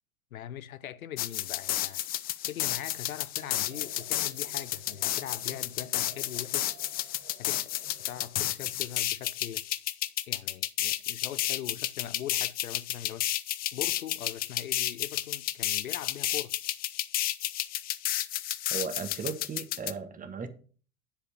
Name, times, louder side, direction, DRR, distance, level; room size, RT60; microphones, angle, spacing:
voice 1, 0.3-2.0 2.5-6.7 7.4-7.7 8.0-9.6 10.3-13.3 13.7-16.5, left 11 dB, 75° left, 0.6 m, -41 dB
sound 1, 1.2-19.9, left 14 dB, 25° left, 0.4 m, -32 dB
sound 2, 3.4-8.4, right 6 dB, 50° right, 2.8 m, -54 dB
voice 2, 18.7-20.5, right 5 dB, 20° right, 1.2 m, -36 dB
10.5 x 5.0 x 5.8 m
figure-of-eight pair, 75°, 42 cm